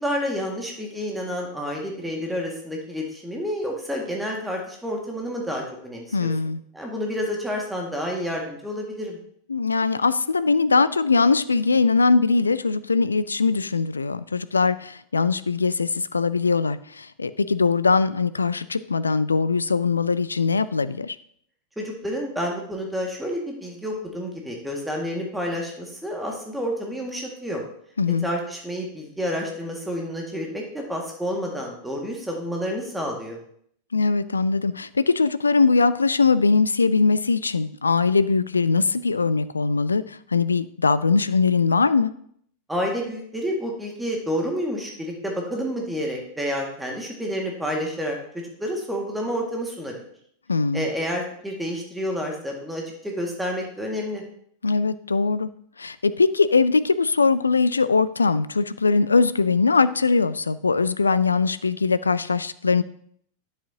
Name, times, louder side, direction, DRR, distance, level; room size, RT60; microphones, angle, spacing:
voice 1, 0.0-6.3 6.7-9.2 21.8-27.6 28.2-33.4 42.7-48.2 48.6-49.9 50.7-54.2, equal, 5° right, 0 dB, 1.8 m, -29 dB
voice 2, 6.1-6.6 9.5-21.2 28.0-28.3 33.9-42.1 50.5-50.9 54.6-55.5 55.8-62.8, left 4 dB, 75° left, 16 dB, 0.4 m, -21 dB
10.0 x 7.3 x 2.8 m, 0.64 s
figure-of-eight pair, 90°, 0 cm